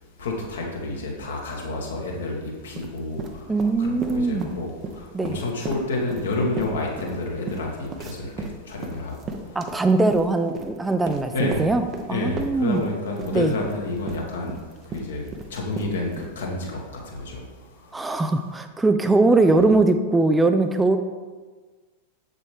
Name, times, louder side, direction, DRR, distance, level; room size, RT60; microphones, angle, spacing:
voice 1, 0.2-3.5 3.8-9.6 11.3-11.7 12.1-14.5 14.8-15.2 15.5-17.5 17.7-17.9 19.5-19.6, left 2 dB, 65° left, -1 dB, 1.8 m, -29 dB
sound 1, 2.6-4.6 4.8-12.1 12.4-16.3, right 3 dB, 30° right, 0.8 m, -35 dB
voice 2, 3.5-4.5 5.1-5.4 9.6-12.8 13.3-13.5 17.9-21.0, right 3 dB, 10° right, 7 dB, 0.4 m, -21 dB
7.6 x 7.4 x 3.4 m, 1.4 s
figure-of-eight pair, 90°, 0 cm